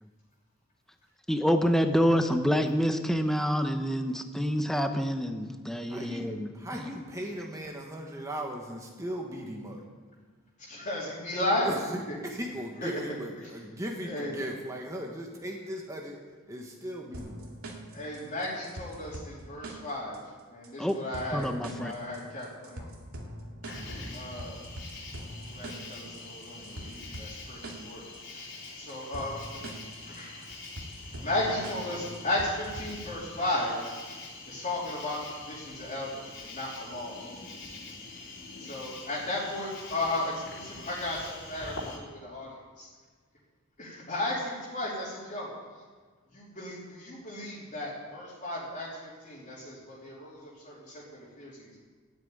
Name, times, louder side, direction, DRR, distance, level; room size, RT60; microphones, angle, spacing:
voice 1, 1.3-6.8 20.8-21.0 21.3-21.9, equal, ahead, 6 dB, 0.9 m, -27 dB
voice 2, 5.9-9.8 11.6-16.2 16.5-17.5, equal, 15° right, 0 dB, 1.4 m, -38 dB
voice 3, 10.6-11.7 12.1-12.2 12.8-13.0 13.4-13.5 14.0-14.4 17.9-20.2 20.5-21.5 21.8-22.9 24.1-24.6 25.4-28.0 28.3-28.5 28.7-29.4 30.0-30.4 31.1-33.8 34.5-37.7 38.6-42.5 42.8-42.9 43.8-45.5 46.3-51.0 51.4-51.7, left 1 dB, 35° left, -7 dB, 3.2 m, -35 dB
sound 1, 17.1-33.1, right 1 dB, 80° right, 2.3 m, -44 dB
Cricket, 23.6-42.0, left 3 dB, 60° left, 3.6 m, -44 dB
13.0 x 9.1 x 9.1 m, 1.5 s
head